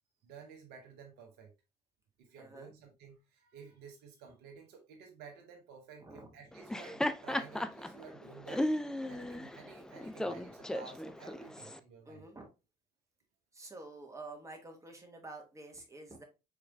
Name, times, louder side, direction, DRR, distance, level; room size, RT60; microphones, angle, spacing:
voice 1, 0.2-1.5 2.2-12.2, right 6 dB, 60° right, 1.1 m, -53 dB
voice 2, 2.4-2.7 6.0-6.3 12.0-12.5 13.5-16.2, right 2 dB, 15° right, 1.5 m, -49 dB
Laughter, 6.5-11.8, left 1 dB, 5° left, 0.4 m, -36 dB
4.8 x 4.5 x 2.3 m
figure-of-eight pair, 55°, 19 cm